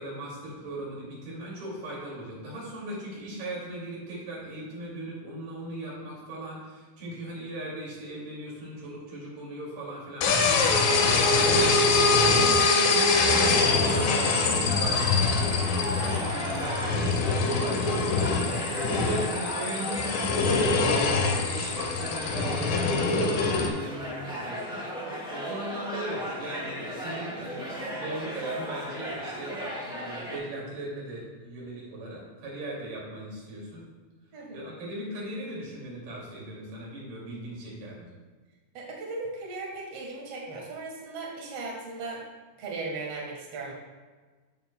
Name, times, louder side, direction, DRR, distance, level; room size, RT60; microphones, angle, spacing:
voice 1, 0.0-18.2 18.7-24.8 25.3-33.9 34.5-38.1, right 1 dB, 80° right, -5 dB, 4.4 m, -38 dB
sound 1, 10.2-23.7, left 4 dB, 70° left, 2.4 m, -24 dB
sound 2, 12.9-30.4, equal, 5° right, 0.7 m, -35 dB
voice 2, 34.3-34.6 38.7-42.2 42.6-43.7, right 3 dB, 55° right, 0 dB, 2.0 m, -37 dB
13.0 x 6.5 x 2.2 m, 1.3 s
omnidirectional pair, 4.4 m